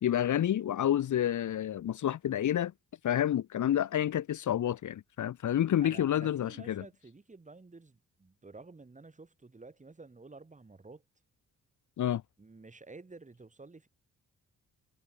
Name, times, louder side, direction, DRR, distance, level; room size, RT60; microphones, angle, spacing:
voice 1, 0.0-2.7 3.0-6.8 12.0-12.2, left 11 dB, 60° left, 1.2 m, -29 dB
voice 2, 5.8-11.0 12.4-13.9, right 3 dB, 20° right, 5.5 m, -51 dB
cardioid pair, 95°, 33 cm